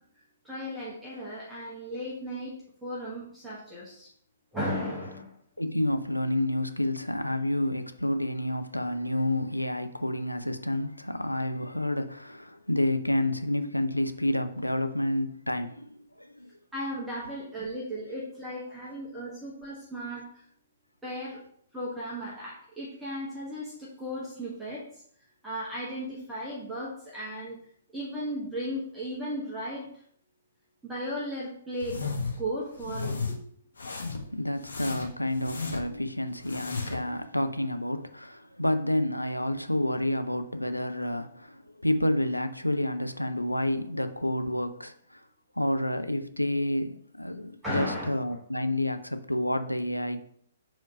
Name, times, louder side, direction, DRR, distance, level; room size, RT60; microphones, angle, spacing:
voice 1, 0.4-2.5 2.8-4.1 4.5-5.4 16.7-20.2 21.0-21.4 21.7-25.0 25.4-27.6 27.9-29.9 30.8-32.1 32.4-33.4 47.6-48.1, equal, 5° right, 1.3 m, -35 dB
voice 2, 5.6-16.5 34.1-45.2 45.6-50.2, left 1 dB, 90° left, 0.6 m, -29 dB
sound 1, 31.8-32.4 32.8-33.3 33.8-34.3 34.6-36.0 36.4-37.1, left 4 dB, 70° left, 1.1 m, -34 dB
5.0 x 3.7 x 5.3 m
figure-of-eight pair, 120°, 0 cm